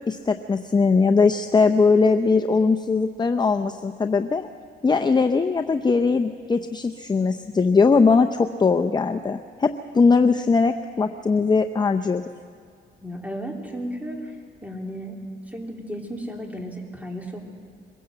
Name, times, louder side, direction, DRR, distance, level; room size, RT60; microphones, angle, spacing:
voice 1, 0.1-4.5 4.8-12.2, left 4 dB, 20° left, 6 dB, 0.6 m, -20 dB
voice 2, 13.0-14.2 14.6-15.2 15.5-17.4, equal, 5° right, 1 dB, 3.2 m, -34 dB
22.5 x 16.5 x 7.7 m, 2.1 s
cardioid pair, 90°, 20 cm